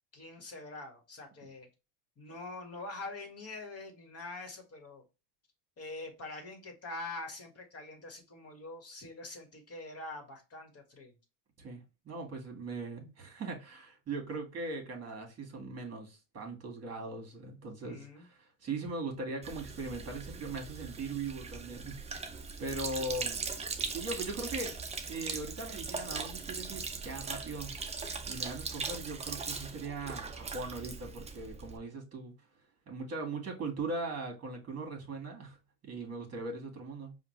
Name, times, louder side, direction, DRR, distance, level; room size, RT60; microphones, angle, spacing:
voice 1, 0.1-1.7 2.2-5.0 5.8-11.2 17.8-18.3, left 2 dB, 30° left, 1.5 m, -44 dB
voice 2, 11.6-22.3 22.6-23.4 23.9-24.7 25.0-27.7 28.3-32.3 32.9-35.6 35.8-37.2, right 3 dB, 30° right, 1.8 m, -40 dB
Sink (filling or washing), 19.4-31.8, right 4 dB, 15° right, 0.4 m, -40 dB
5.0 x 2.4 x 3.1 m
supercardioid pair, 110°, 49 cm